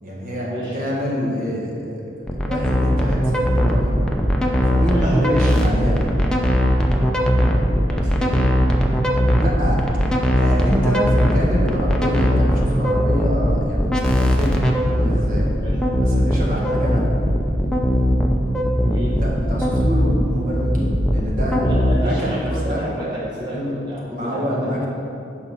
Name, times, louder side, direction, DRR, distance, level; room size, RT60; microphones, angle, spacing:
voice 1, 0.0-4.0 4.7-6.0 9.3-9.8 10.3-15.5 16.0-17.0 19.2-22.8 23.5-23.7 24.1-24.9, equal, 45° right, -4 dB, 1.6 m, -26 dB
sound 1, 2.3-22.0, equal, 5° left, 0.6 m, -19 dB
voice 2, 4.8-5.1 7.9-8.4 15.5-15.8 16.5-16.6 18.9-19.2 21.6-24.8, equal, 25° right, -8 dB, 1.2 m, -31 dB
8.7 x 5.6 x 5.6 m, 2.7 s
head